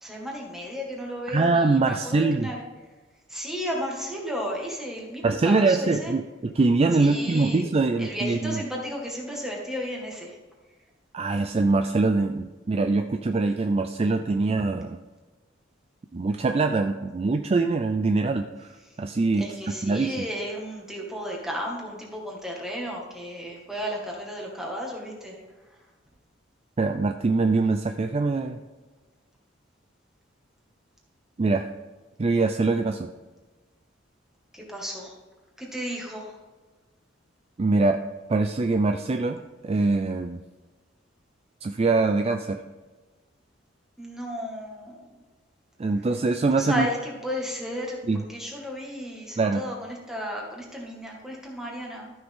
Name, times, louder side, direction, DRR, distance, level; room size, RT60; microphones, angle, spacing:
voice 1, 0.0-2.6 3.3-6.1 7.0-7.6 8.0-10.4 19.4-25.4 25.6-25.7 34.5-35.2 35.6-36.4 44.0-45.0 46.5-52.1, equal, ahead, -2 dB, 2.0 m, -34 dB
voice 2, 1.3-2.5 5.2-8.6 11.1-15.0 16.1-19.4 19.8-20.2 26.8-28.6 31.4-31.7 32.2-33.1 37.6-38.0 38.3-40.4 41.6-42.6 45.8-46.9 48.0-48.2 49.4-49.6, right 3 dB, 30° right, 6 dB, 0.4 m, -23 dB
13.0 x 6.2 x 3.7 m, 1.2 s
head